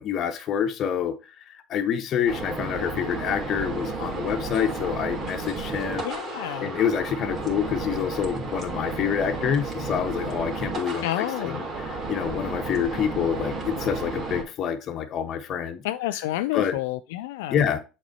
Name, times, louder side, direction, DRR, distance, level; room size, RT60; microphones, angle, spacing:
voice 1, 0.0-6.1 6.6-15.8 16.1-16.2 16.5-16.8 17.5-17.8, left 8 dB, 50° left, 1.2 m, -27 dB
sound 1, 2.3-14.4, right 3 dB, 35° right, 3.0 m, -32 dB
voice 2, 6.0-6.7 11.0-11.6 15.8-17.6, left 15 dB, 80° left, 0.4 m, -29 dB
7.3 x 4.2 x 4.3 m
supercardioid pair, 90°, 0 cm